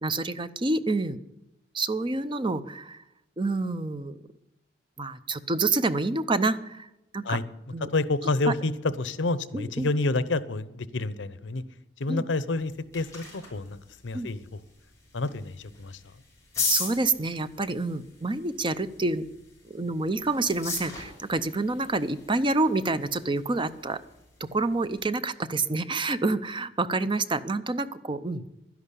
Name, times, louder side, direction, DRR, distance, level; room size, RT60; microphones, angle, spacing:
voice 1, 0.0-1.2 1.7-3.0 3.4-4.2 5.0-6.9 7.1-7.4 7.7-7.9 8.4-8.5 9.5-9.9 12.1-12.2 14.1-14.3 16.7-19.2 19.6-24.0 24.4-28.4, right 3 dB, 25° right, 12 dB, 0.6 m, -28 dB
voice 2, 7.9-8.7 9.0-11.6 12.0-14.6 15.1-16.0, left 2 dB, 75° left, 15 dB, 0.8 m, -29 dB
sound 1, 12.5-25.0, left 4 dB, 15° left, 5.8 m, -39 dB
11.5 x 11.0 x 8.3 m, 0.88 s
head